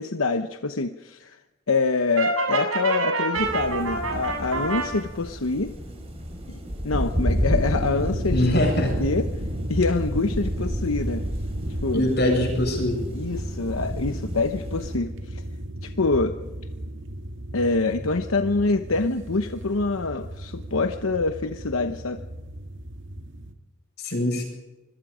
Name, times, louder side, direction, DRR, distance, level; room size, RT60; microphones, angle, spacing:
voice 1, 0.0-1.4 1.7-5.7 6.5-6.6 6.8-8.5 9.0-9.3 9.7-11.2 11.8-12.1 13.1-15.4 15.8-16.4 17.5-22.2, left 3 dB, 85° left, 8 dB, 1.0 m, -25 dB
Brass instrument, 2.2-4.9, right 3 dB, 85° right, 7.7 m, -26 dB
sound 1, 3.4-15.0, equal, 30° right, 5.5 m, -31 dB
sound 2, 7.6-23.5, right 1 dB, 65° right, 2.3 m, -34 dB
voice 2, 8.3-9.0 11.9-13.0 24.0-24.4, left 1 dB, 55° left, 2 dB, 7.8 m, -23 dB
25.5 x 22.0 x 5.1 m, 1.1 s
head